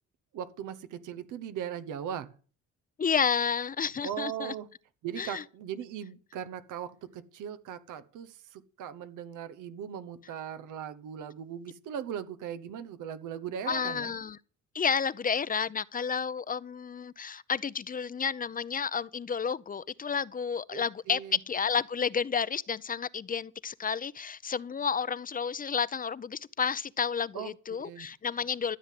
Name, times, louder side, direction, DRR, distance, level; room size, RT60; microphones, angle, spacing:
voice 1, 0.3-2.3 4.0-4.7 5.0-14.1 20.7-21.4 27.3-28.1, right 9 dB, 85° right, 1.0 m, -39 dB
voice 2, 3.0-4.5 5.2-5.4 13.7-14.4 14.7-28.8, left 6 dB, 30° left, 0.6 m, -31 dB
13.5 x 7.6 x 7.5 m
cardioid pair, 90°, 30 cm